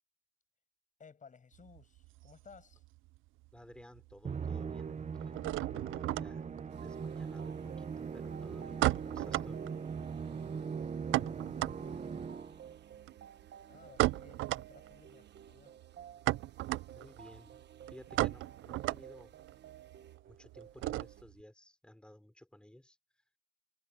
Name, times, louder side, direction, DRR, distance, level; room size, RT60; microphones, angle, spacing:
voice 1, 1.0-2.8 10.0-11.2 11.8-12.5 13.7-15.8, left 5 dB, 40° left, 7.8 m, -59 dB
sound 1, 1.5-3.2 3.4-4.1 4.4-21.4, right 17 dB, 80° right, 0.4 m, -36 dB
voice 2, 3.5-5.6 6.2-6.4 6.8-9.6 16.9-17.6 17.9-19.4 20.3-23.0, left 1 dB, 5° left, 4.8 m, -56 dB
Musical instrument, 4.2-12.7, right 6 dB, 35° right, 1.0 m, -40 dB
sound 2, 6.7-21.2, right 9 dB, 60° right, 1.3 m, -54 dB
cardioid pair, 90°, 20 cm